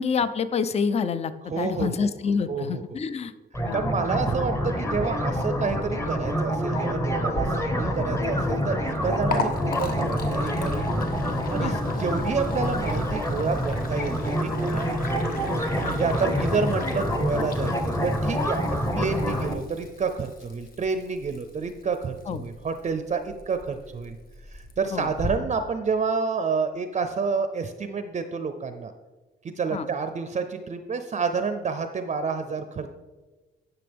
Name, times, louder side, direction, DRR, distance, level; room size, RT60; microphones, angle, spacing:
voice 1, 0.0-3.3 3.6-3.8 11.6-11.8 15.8-16.0 22.3-22.4 24.9-25.1 29.7-29.9, left 5 dB, 30° left, 13 dB, 0.5 m, -27 dB
voice 2, 1.4-2.1 2.5-2.8 3.7-10.9 11.5-15.0 15.8-24.2 24.5-28.9 29.4-32.9, right 5 dB, 35° right, 9 dB, 0.5 m, -29 dB
sound 1, 3.5-19.5, equal, 15° left, 0.9 m, -27 dB
Liquid, 7.3-25.3, left 3 dB, 50° left, 1.2 m, -39 dB
11.0 x 6.0 x 3.5 m, 1.2 s
cardioid pair, 90°, 20 cm